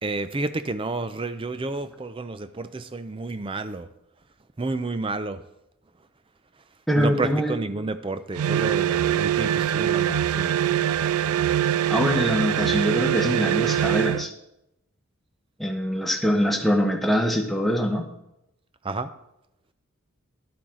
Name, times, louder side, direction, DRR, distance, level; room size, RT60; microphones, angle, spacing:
voice 1, 0.0-3.9 4.6-5.5 6.9-10.5 18.8-19.1, right 3 dB, 25° right, 12 dB, 0.5 m, -30 dB
voice 2, 6.9-7.5 11.9-14.3 15.6-18.1, equal, ahead, 1 dB, 1.0 m, -23 dB
sound 1, 8.3-14.3, right 10 dB, 85° right, 0.3 m, -23 dB
11.0 x 9.0 x 3.8 m, 0.85 s
head